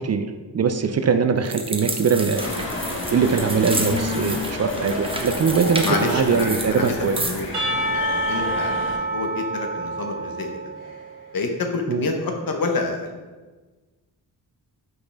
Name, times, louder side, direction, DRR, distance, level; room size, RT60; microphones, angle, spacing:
voice 1, 0.0-2.5 3.1-7.2 11.9-12.1, right 5 dB, 40° right, 8 dB, 0.5 m, -21 dB
sound 1, 1.4-7.5, right 2 dB, 15° right, 0.9 m, -31 dB
sound 2, 2.3-9.0, left 2 dB, 30° left, 1.5 m, -30 dB
voice 2, 5.8-10.6 11.3-13.1, left 3 dB, 55° left, 3 dB, 1.1 m, -28 dB
Percussion / Church bell, 7.5-11.2, right 1 dB, 65° right, 1.8 m, -27 dB
6.0 x 5.4 x 3.5 m, 1.3 s
cardioid pair, 60°, 41 cm